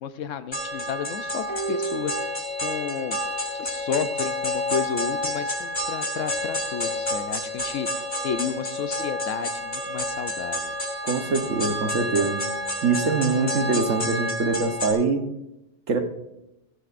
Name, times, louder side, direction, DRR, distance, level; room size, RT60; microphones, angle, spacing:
voice 1, 0.0-2.4 2.6-3.2 3.5-10.7, left 7 dB, 85° left, 12 dB, 1.1 m, -32 dB
sound 1, 0.5-14.9, left 1 dB, 20° left, 3.9 m, -29 dB
sound 2, 1.5-3.1 3.4-3.5, right 5 dB, 35° right, 1.0 m, -34 dB
voice 2, 11.0-12.4 12.8-15.2 15.9-16.0, right 4 dB, 90° right, 6 dB, 1.5 m, -23 dB
16.5 x 13.5 x 2.5 m, 0.91 s
omnidirectional pair, 1.3 m